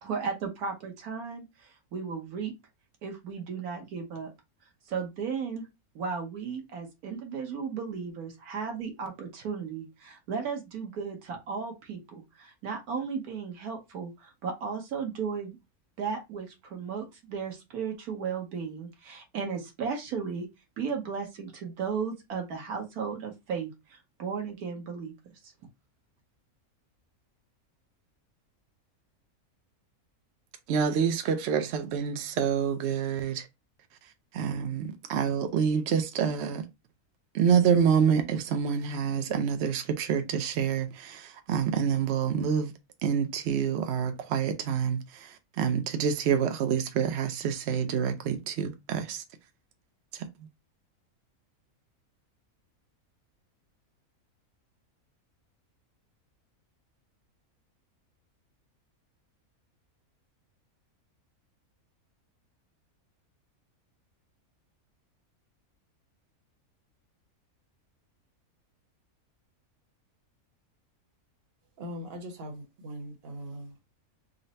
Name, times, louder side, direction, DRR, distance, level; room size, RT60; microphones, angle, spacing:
voice 1, 0.0-2.5 3.0-4.3 4.9-5.7 5.9-15.6 16.0-20.5 20.8-25.1, right 6 dB, 85° right, 1.5 m, -35 dB
voice 2, 30.7-33.5 34.3-36.7 37.3-42.7 43.0-49.2 50.1-50.3, right 7 dB, 65° right, 0.7 m, -27 dB
voice 3, 71.8-73.8, equal, 45° right, 1.2 m, -40 dB
3.9 x 2.1 x 4.0 m
omnidirectional pair, 1.5 m